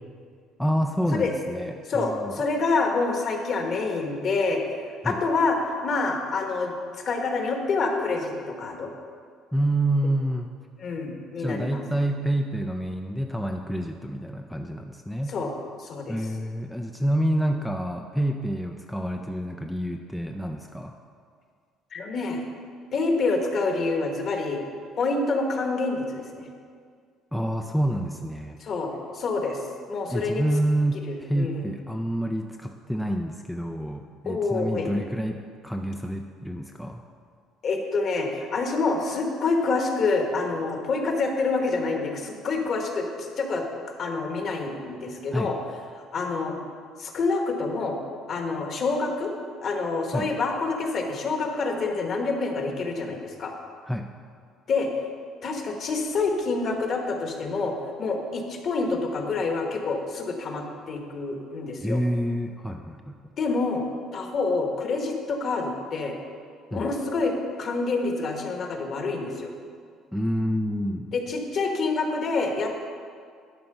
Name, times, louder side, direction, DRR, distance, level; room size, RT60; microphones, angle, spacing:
voice 1, 0.6-2.3 5.0-5.2 9.5-10.5 11.4-15.4 16.1-20.9 27.3-28.6 30.1-37.0 45.3-45.5 50.1-50.3 53.9-54.1 61.8-63.3 66.7-66.9 70.1-71.1, right 1 dB, ahead, 3 dB, 0.4 m, -28 dB
voice 2, 1.9-4.6 5.0-6.7 7.0-8.9 10.8-11.8 15.3-15.5 15.8-16.1 21.9-22.4 22.9-24.6 25.0-26.5 28.6-29.6 29.9-30.4 31.0-31.7 34.2-34.9 37.6-43.6 44.0-45.6 46.0-46.6 47.0-48.0 48.3-49.3 49.6-53.5 54.7-54.9 55.4-62.0 63.4-63.8 64.1-66.1 66.7-69.5 71.1-72.7, left 3 dB, 45° left, 3 dB, 1.3 m, -27 dB
11.5 x 4.4 x 6.7 m, 2.1 s
cardioid pair, 130°, 0 cm